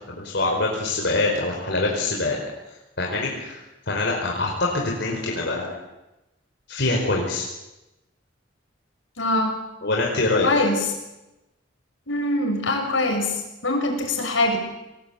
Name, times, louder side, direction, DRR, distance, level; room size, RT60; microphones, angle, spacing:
voice 1, 0.1-2.4 3.0-3.6 3.9-5.7 6.7-7.4 9.8-10.5, left 2 dB, 65° left, -1 dB, 4.8 m, -24 dB
voice 2, 9.2-9.5 10.4-10.8 12.1-14.6, left 2 dB, 80° left, 3 dB, 6.5 m, -23 dB
28.0 x 19.5 x 8.2 m, 0.98 s
head